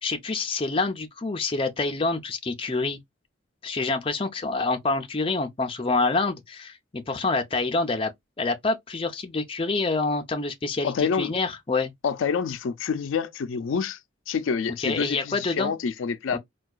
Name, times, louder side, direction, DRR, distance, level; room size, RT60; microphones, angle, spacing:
voice 1, 0.0-3.0 3.6-8.1 8.4-11.9 14.8-15.7 16.3-16.4, left 3 dB, 25° left, 0.5 m, -27 dB
voice 2, 10.8-11.3 12.0-14.0 14.3-16.4, left 6 dB, 85° left, 0.4 m, -27 dB
4.5 x 2.2 x 2.3 m
head